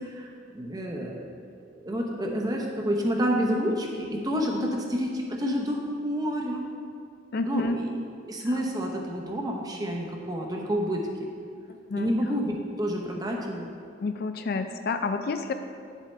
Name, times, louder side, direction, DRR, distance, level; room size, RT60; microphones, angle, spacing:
voice 1, 0.1-1.3 1.7-6.6 7.5-7.8 8.3-11.3 11.9-13.7, equal, 20° right, 0 dB, 0.9 m, -29 dB
voice 2, 7.3-7.8 8.5-8.6 11.7-12.1 14.0-15.5, left 3 dB, 55° left, 8 dB, 0.4 m, -29 dB
9.5 x 7.2 x 3.3 m, 2.3 s
head